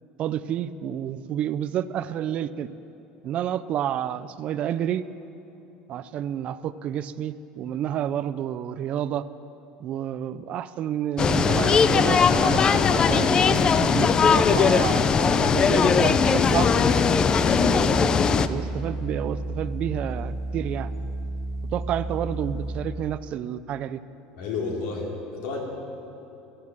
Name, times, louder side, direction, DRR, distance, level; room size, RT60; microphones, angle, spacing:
voice 1, 0.2-2.7 3.2-5.0 5.9-9.3 9.8-16.7 17.5-20.9 21.7-24.0, right 10 dB, 40° right, 15 dB, 0.4 m, -30 dB
sound 1, 11.2-18.5, left 6 dB, 25° left, 0.5 m, -20 dB
sound 2, 16.0-22.8, right 2 dB, ahead, 2.6 m, -32 dB
voice 2, 24.4-25.6, left 4 dB, 70° left, 0 dB, 3.1 m, -31 dB
12.5 x 12.0 x 7.3 m, 2.9 s
cardioid pair, 145°, 3 cm